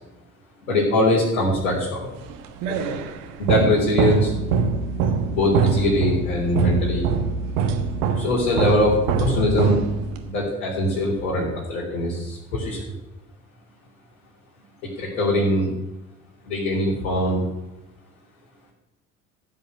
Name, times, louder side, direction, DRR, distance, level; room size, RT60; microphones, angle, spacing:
voice 1, 0.7-2.1 2.7-3.0 3.4-4.3 5.3-7.1 8.2-9.8 10.3-12.8 15.0-15.7 16.5-17.4, left 1 dB, 75° left, -5 dB, 3.6 m, -22 dB
sound 1, 2.2-10.3, right 5 dB, 70° right, 1.5 m, -24 dB
14.5 x 5.6 x 7.9 m, 0.96 s
hypercardioid pair, 60°, 41 cm